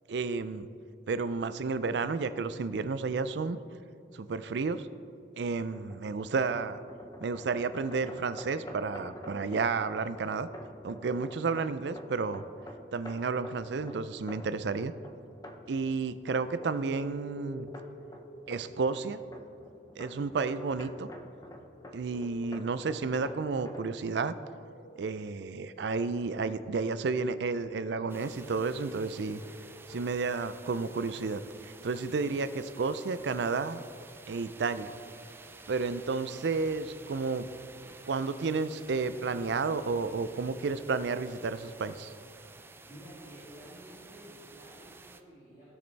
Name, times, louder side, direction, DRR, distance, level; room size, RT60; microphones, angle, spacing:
voice 1, 0.1-0.7 1.1-3.6 4.1-4.9 5.4-6.8 7.2-10.5 10.8-12.4 12.9-14.9 15.7-17.7 18.5-19.2 20.0-21.1 21.9-24.3 25.0-29.4 29.9-33.8 34.3-34.9 35.7-37.5 38.1-42.1, right 4 dB, 75° right, 13 dB, 0.4 m, -31 dB
sound 1, 5.4-23.9, equal, 20° left, 0.7 m, -49 dB
sound 2, 16.3-30.4, left 3 dB, 60° left, 0.8 m, -52 dB
sound 3, 28.1-45.2, right 3 dB, 15° right, 0.3 m, -52 dB
voice 2, 42.8-45.8, equal, 40° left, -10 dB, 2.7 m, -51 dB
16.5 x 6.5 x 3.4 m, 2.5 s
head